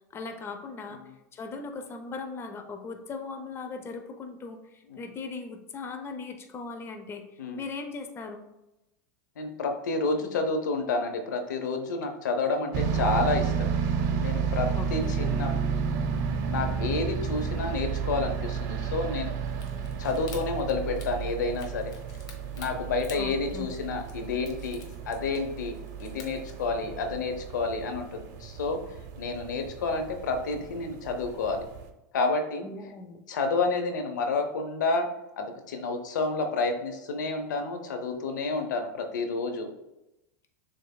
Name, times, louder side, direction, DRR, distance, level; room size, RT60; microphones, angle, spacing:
voice 1, 0.1-1.0 1.3-7.2 7.5-8.4 14.7-15.3 23.1-23.7 32.6-33.2, left 4 dB, 25° left, 5 dB, 0.6 m, -39 dB
voice 2, 9.4-13.7 14.2-15.5 16.5-19.3 20.0-21.9 22.6-28.8 29.2-31.6 32.1-32.7 33.3-35.1 35.4-39.7, left 3 dB, 80° left, 5 dB, 0.7 m, -30 dB
sound 1, 12.7-31.9, right 6 dB, 55° right, 0.7 m, -32 dB
sound 2, 19.4-26.7, left 5 dB, 45° left, 1.2 m, -52 dB
6.7 x 3.4 x 2.3 m, 0.92 s
hypercardioid pair, 105°, 10 cm